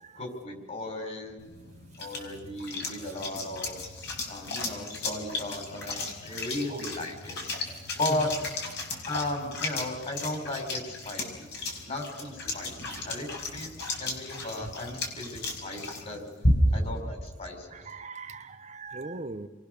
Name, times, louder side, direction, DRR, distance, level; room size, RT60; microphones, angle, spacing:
voice 1, 0.2-1.4 2.0-7.4 8.0-8.3 9.1-11.5 11.9-13.7 14.0-16.2 16.7-17.8, left 2 dB, 35° left, 4 dB, 5.4 m, -36 dB
sound 1, 1.4-16.9, left 2 dB, 55° left, 5.2 m, -34 dB
voice 2, 17.7-19.5, right 3 dB, 35° right, 8 dB, 0.8 m, -40 dB
29.5 x 23.0 x 6.8 m, 1.2 s
head